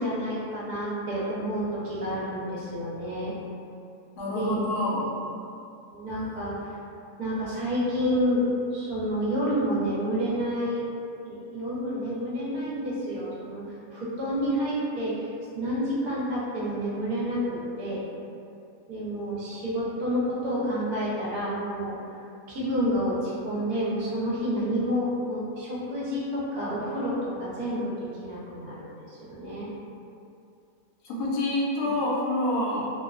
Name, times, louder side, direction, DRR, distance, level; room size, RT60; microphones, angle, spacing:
voice 1, 0.0-3.3 4.3-4.6 5.9-6.7 7.2-10.8 11.2-13.6 13.9-15.3 15.5-18.0 18.9-22.0 22.5-29.7 31.8-31.9, equal, 75° right, -7 dB, 1.1 m, -29 dB
voice 2, 4.2-5.1 31.0-32.9, left 1 dB, 90° left, -4 dB, 1.1 m, -27 dB
3.0 x 2.0 x 2.4 m, 2.6 s
omnidirectional pair, 1.6 m